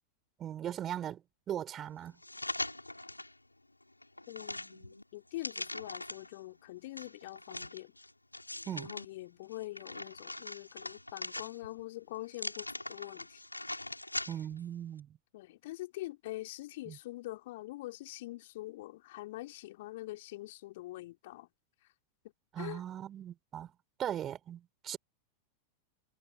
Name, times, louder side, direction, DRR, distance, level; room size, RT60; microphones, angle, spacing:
voice 1, 0.4-1.2 1.5-2.2 8.7-8.9 14.3-15.2 16.9-17.0 22.5-23.7 24.0-25.0, right 10 dB, 30° right, 7.0 m, -39 dB
sound 1, 2.2-3.3 3.8-6.4 7.0-9.1 9.5-11.8 12.3-14.6 15.0-15.1, left 2 dB, 85° left, 7.7 m, -41 dB
voice 2, 4.3-7.9 8.9-13.4 15.3-21.5 22.6-22.8, left 17 dB, 55° left, 4.6 m, -44 dB
figure-of-eight pair, 90°, 0 cm